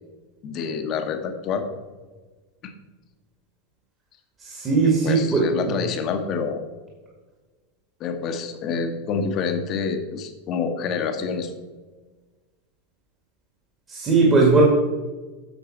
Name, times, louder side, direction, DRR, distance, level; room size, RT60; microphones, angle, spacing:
voice 1, 0.4-1.6 2.6-2.7 5.0-6.6 8.0-11.5, left 5 dB, 40° left, 6 dB, 1.1 m, -27 dB
voice 2, 4.4-5.7 13.9-14.6, right 3 dB, 25° right, -2 dB, 1.9 m, -19 dB
8.2 x 6.6 x 4.4 m, 1.3 s
figure-of-eight pair, 80°, 0 cm